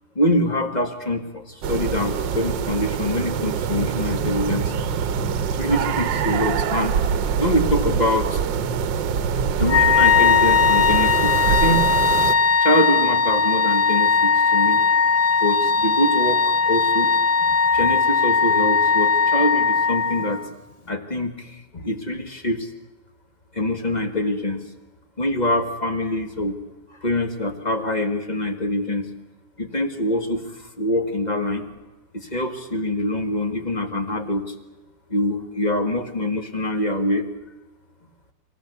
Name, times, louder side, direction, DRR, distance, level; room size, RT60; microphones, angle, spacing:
voice 1, 0.2-4.7 5.5-7.0 7.4-8.4 9.6-11.9 12.6-14.8 15.4-17.1 17.4-20.4 20.9-22.7 23.5-24.6 25.2-26.6 26.9-29.1 29.6-31.6 32.1-34.6 35.1-37.3, left 1 dB, 25° left, 7 dB, 1.7 m, -24 dB
sound 1, 1.6-12.3, right 7 dB, 80° right, 1.6 m, -24 dB
Wind instrument woodwind instrument, 9.7-20.4, left 5 dB, 85° left, 0.3 m, -19 dB
26.0 x 15.0 x 8.1 m, 1.1 s
omnidirectional pair, 1.9 m